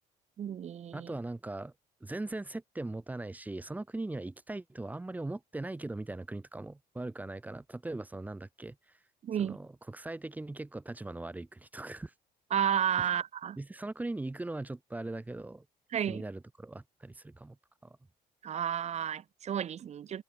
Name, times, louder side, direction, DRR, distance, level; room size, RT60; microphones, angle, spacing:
voice 1, 0.4-1.1 9.2-9.6 12.5-13.6 15.9-16.2 18.4-20.2, right 9 dB, 40° right, 0.7 m, -32 dB
voice 2, 0.9-1.7 2.0-9.0 9.4-12.1 13.0-13.1 13.6-15.6 16.1-17.6 17.8-18.0, right 2 dB, 10° right, 0.5 m, -40 dB
cardioid pair, 110°, 17 cm